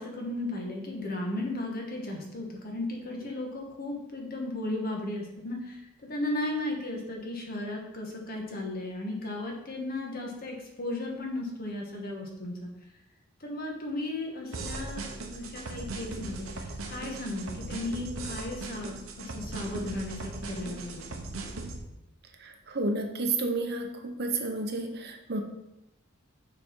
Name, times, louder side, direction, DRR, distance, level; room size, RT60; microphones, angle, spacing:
voice 1, 0.0-12.7 13.4-15.0 15.3-21.1, left 1 dB, 45° left, 0 dB, 1.4 m, -35 dB
sound 1, 14.5-21.8, right 2 dB, 80° right, 0.9 m, -38 dB
voice 2, 22.4-25.4, right 3 dB, 50° right, 4 dB, 0.8 m, -31 dB
6.5 x 4.2 x 4.7 m, 0.89 s
head